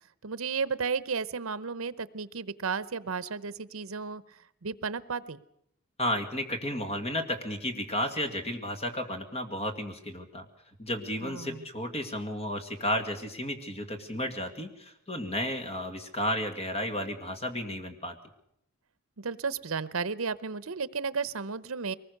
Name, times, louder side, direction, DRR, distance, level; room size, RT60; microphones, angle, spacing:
voice 1, 0.2-5.4 11.2-11.7 19.2-21.9, right 5 dB, 70° right, 17 dB, 0.8 m, -33 dB
voice 2, 6.0-10.5 10.8-18.2, left 1 dB, 30° left, 6 dB, 2.2 m, -33 dB
23.0 x 20.0 x 6.7 m, 0.76 s
head